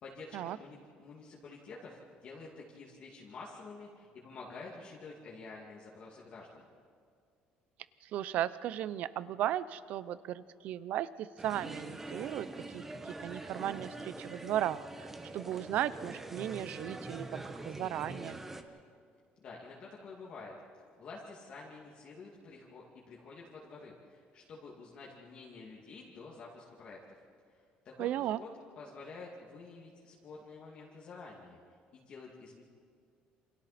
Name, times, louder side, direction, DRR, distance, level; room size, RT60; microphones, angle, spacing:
voice 1, 0.0-6.7 19.4-20.5 21.0-27.2 27.8-28.1 28.4-28.5 28.8-31.6 31.9-32.6, left 3 dB, 35° left, -4 dB, 2.3 m, -49 dB
voice 2, 8.0-18.4 28.0-28.4, right 12 dB, 50° right, 16 dB, 0.6 m, -36 dB
sound 1, 11.4-18.6, right 2 dB, 10° right, 1.0 m, -44 dB
28.5 x 27.0 x 4.3 m, 2.2 s
cardioid pair, 180°, 3 cm